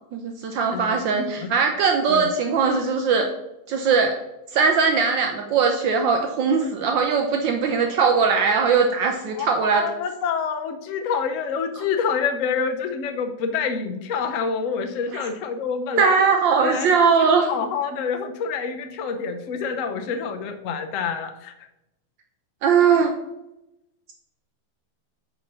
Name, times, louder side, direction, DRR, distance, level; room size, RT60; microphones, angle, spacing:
voice 1, 0.1-3.3 3.7-4.1 4.5-9.8 15.1-15.3 16.0-17.5 22.6-23.1, right 5 dB, 70° right, 3 dB, 1.3 m, -20 dB
voice 2, 0.7-1.5 2.1-2.3 9.3-16.2 16.6-21.7, left 6 dB, 70° left, 6 dB, 0.7 m, -27 dB
5.3 x 4.3 x 6.1 m, 0.88 s
omnidirectional pair, 2.3 m